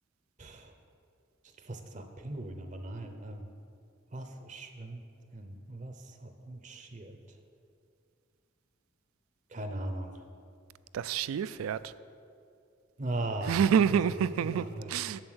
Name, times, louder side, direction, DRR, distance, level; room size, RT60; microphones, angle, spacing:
voice 1, 0.4-0.7 1.6-3.5 4.1-5.0 5.3-7.2 9.5-10.1 13.0-14.0 14.4-14.9, right 1 dB, 35° right, 6 dB, 0.6 m, -39 dB
voice 2, 10.9-11.9 13.4-15.2, right 7 dB, 85° right, 16 dB, 0.3 m, -28 dB
7.7 x 7.3 x 6.3 m, 2.5 s
head